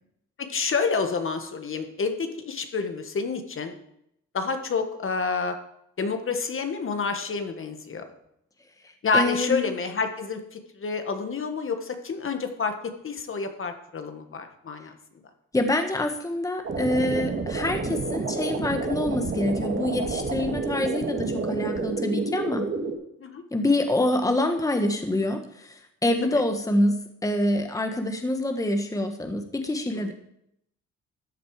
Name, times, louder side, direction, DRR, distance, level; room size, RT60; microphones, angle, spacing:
voice 1, 0.4-3.7 4.3-5.5 6.0-8.0 9.0-14.9 23.2-23.4 29.9-30.1, left 4 dB, 45° left, 7 dB, 1.6 m, -28 dB
voice 2, 8.8-9.7 15.5-22.7 23.5-30.1, left 1 dB, 10° left, 6 dB, 1.4 m, -26 dB
sound 1, 16.6-22.9, right 3 dB, 40° right, 2.3 m, -29 dB
13.5 x 8.0 x 5.0 m, 0.76 s
cardioid pair, 90°, 30 cm